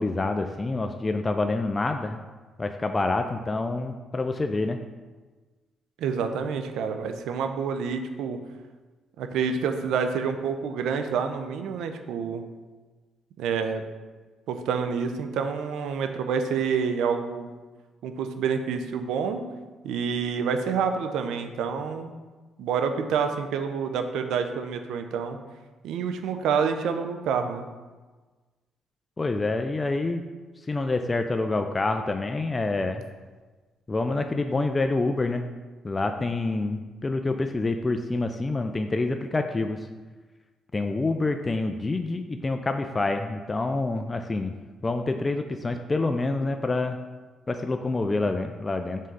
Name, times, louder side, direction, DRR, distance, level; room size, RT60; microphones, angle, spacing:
voice 1, 0.0-2.2 2.6-4.8 29.2-30.2 30.7-33.0 33.9-35.5 35.8-39.9 40.7-44.5 44.8-47.0 47.5-49.0, left 2 dB, 25° left, 6 dB, 0.4 m, -27 dB
voice 2, 6.0-8.4 9.2-12.5 13.4-13.8 14.5-17.5 18.0-19.4 19.8-22.1 22.6-25.4 25.8-27.6, right 6 dB, 85° right, 7 dB, 0.5 m, -28 dB
5.4 x 3.7 x 5.4 m, 1.3 s
cardioid pair, 90°, 0 cm